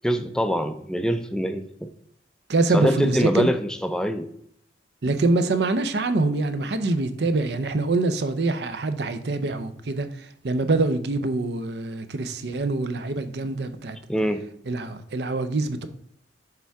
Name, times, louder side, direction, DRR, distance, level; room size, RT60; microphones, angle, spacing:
voice 1, 0.0-1.9 2.7-4.3 14.1-14.5, equal, 5° left, 0.4 m, -24 dB
voice 2, 2.5-3.5 5.0-10.1 10.4-14.0 14.7-15.9, right 3 dB, 65° right, 0.6 m, -24 dB
6.8 x 3.5 x 4.5 m
head